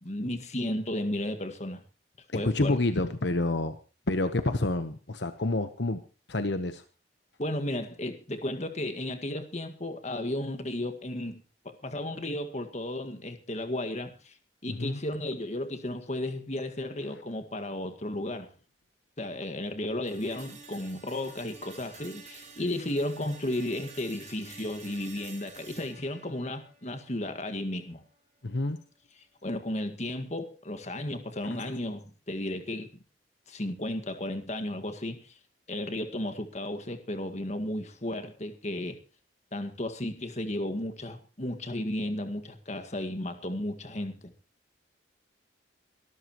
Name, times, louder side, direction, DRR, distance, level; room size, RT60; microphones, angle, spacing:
voice 1, 0.0-1.8 2.3-2.8 7.4-14.3 14.6-18.5 19.2-28.0 29.4-32.9 33.5-35.3 35.7-39.0 39.5-44.3, left 1 dB, 40° left, 8 dB, 1.8 m, -34 dB
voice 2, 2.3-3.8 4.1-6.0 6.3-6.8 14.7-15.0 28.4-28.8 31.4-31.6, left 2 dB, 70° left, 9 dB, 1.1 m, -28 dB
sound 1, 20.1-28.1, right 4 dB, 40° right, 6.2 m, -50 dB
24.0 x 13.0 x 3.1 m, 0.34 s
head